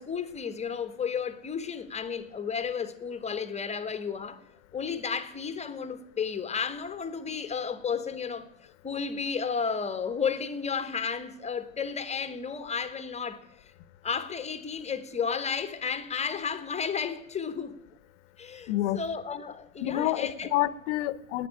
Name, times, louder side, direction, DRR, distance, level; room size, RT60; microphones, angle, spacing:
voice 1, 0.0-4.4 4.7-8.5 8.8-13.4 14.0-17.7 18.4-20.5, left 6 dB, 15° left, 1.1 m, -32 dB
voice 2, 18.7-19.0 19.8-21.5, left 15 dB, 55° left, 0.9 m, -28 dB
10.5 x 9.4 x 9.9 m
hypercardioid pair, 105°, 44 cm